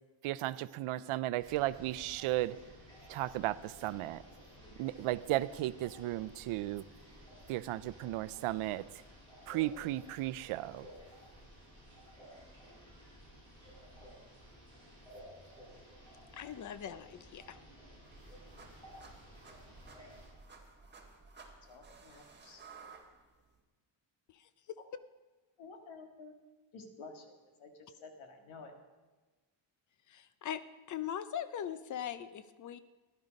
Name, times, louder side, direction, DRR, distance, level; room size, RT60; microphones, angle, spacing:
voice 1, 0.2-2.5 3.1-4.2 4.8-6.8 7.5-8.9 9.5-10.9, right 15 dB, 85° right, 17 dB, 0.6 m, -35 dB
sound 1, 1.4-20.3, equal, 10° left, 5.7 m, -55 dB
voice 2, 16.3-17.6 24.3-24.5 30.1-30.6 30.9-32.8, left 9 dB, 40° left, 14 dB, 0.5 m, -40 dB
sound 2, 18.0-23.6, right 4 dB, 20° right, 1.5 m, -56 dB
voice 3, 21.4-22.6 25.6-26.3 26.7-27.3 27.6-28.7, left 3 dB, 70° left, 4 dB, 2.1 m, -52 dB
14.5 x 11.0 x 5.2 m, 1.3 s
cardioid pair, 180°, 49 cm